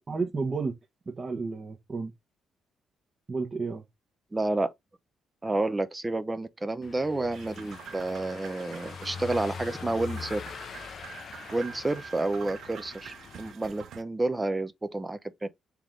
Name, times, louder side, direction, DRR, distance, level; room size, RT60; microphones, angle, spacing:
voice 1, 0.1-0.7 1.1-2.1 3.3-3.8, right 4 dB, 35° right, 0.9 m, -31 dB
voice 2, 4.3-4.7 5.4-10.4 11.5-15.5, right 2 dB, 20° right, 0.5 m, -30 dB
Car passing by / Engine, 6.8-13.5, left 6 dB, 55° left, 0.4 m, -43 dB
sound 1, 7.3-14.0, right 8 dB, 70° right, 0.5 m, -46 dB
3.5 x 3.1 x 3.7 m
cardioid pair, 90°, 0 cm